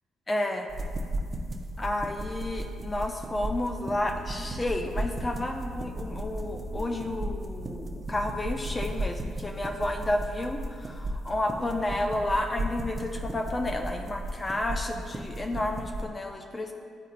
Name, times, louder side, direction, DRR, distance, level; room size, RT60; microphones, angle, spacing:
voice 1, 0.3-0.7 1.8-16.7, left 1 dB, 30° left, 4 dB, 0.5 m, -31 dB
sound 1, 0.7-16.1, right 1 dB, 30° right, 0.8 m, -35 dB
sound 2, 3.7-9.1, right 2 dB, 60° right, 1.2 m, -44 dB
10.5 x 3.9 x 2.5 m, 2.2 s
hypercardioid pair, 50°, 0 cm